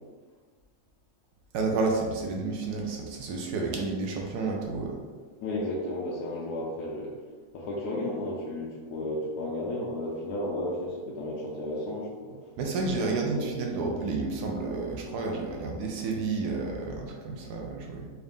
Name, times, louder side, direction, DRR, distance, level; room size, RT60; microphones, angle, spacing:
voice 1, 1.5-5.0 12.6-18.1, right 3 dB, 80° right, 1 dB, 1.1 m, -30 dB
voice 2, 5.4-7.1 7.5-12.4 13.1-13.5, left 1 dB, 80° left, -3 dB, 1.2 m, -33 dB
4.2 x 2.4 x 3.4 m, 1.4 s
omnidirectional pair, 1.7 m